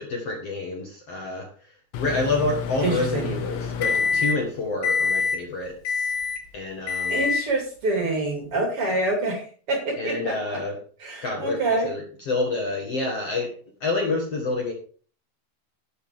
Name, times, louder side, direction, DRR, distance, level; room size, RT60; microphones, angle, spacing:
voice 1, 0.0-6.1 6.5-7.2 10.0-10.8 11.2-13.5 13.8-14.7, left 3 dB, 50° left, 1 dB, 2.1 m, -28 dB
Microwave oven, 1.9-4.5 4.8-5.4 5.8-6.4 6.9-7.5, left 5 dB, 85° left, 3.4 m, -26 dB
voice 2, 2.8-3.3 7.1-10.6 11.0-11.9, right 2 dB, 40° right, 1 dB, 3.0 m, -26 dB
12.5 x 9.1 x 3.7 m, 0.41 s
omnidirectional pair, 4.6 m